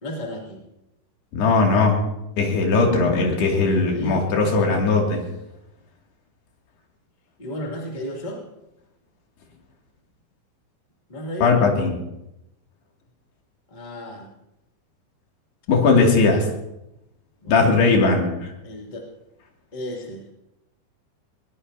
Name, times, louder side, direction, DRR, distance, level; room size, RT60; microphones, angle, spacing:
voice 1, 0.0-0.7 3.5-4.7 7.4-8.4 11.1-11.6 13.7-14.3 17.4-17.6 18.6-19.1 19.7-20.2, equal, 15° left, -2 dB, 2.2 m, -34 dB
voice 2, 1.3-2.0 2.4-5.2 11.4-12.0 15.7-16.5 17.5-18.5, left 4 dB, 85° left, 0 dB, 4.7 m, -18 dB
20.5 x 20.0 x 2.8 m, 0.88 s
omnidirectional pair, 4.6 m